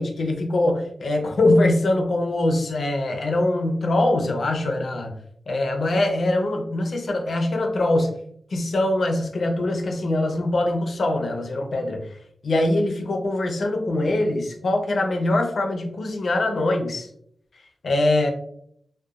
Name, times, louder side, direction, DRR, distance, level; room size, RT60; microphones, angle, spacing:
voice 1, 0.0-5.1 5.5-8.1 8.5-12.0 12.4-17.1 17.8-18.3, left 2 dB, 65° left, 3 dB, 0.5 m, -23 dB
2.8 x 2.2 x 2.4 m, 0.67 s
wide cardioid pair, 80°, 0 cm